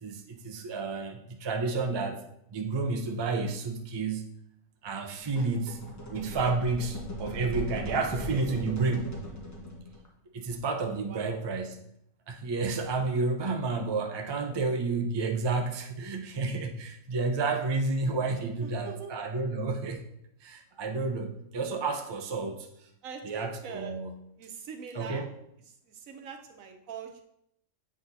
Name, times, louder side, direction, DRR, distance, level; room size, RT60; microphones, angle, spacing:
voice 1, 0.0-2.2 2.5-4.2 4.8-5.8 6.1-9.1 10.3-11.9 12.3-20.0 20.4-22.7 23.2-24.2 24.9-25.3, right 3 dB, 35° right, 4 dB, 0.4 m, -30 dB
sound 1, 5.2-10.1, equal, 15° left, 1.2 m, -39 dB
voice 2, 11.0-11.5 14.4-14.6 18.6-19.1 23.0-24.0 24.4-25.3 25.9-27.2, right 7 dB, 85° right, 5 dB, 1.2 m, -43 dB
7.6 x 6.1 x 2.7 m, 0.75 s
omnidirectional pair, 1.4 m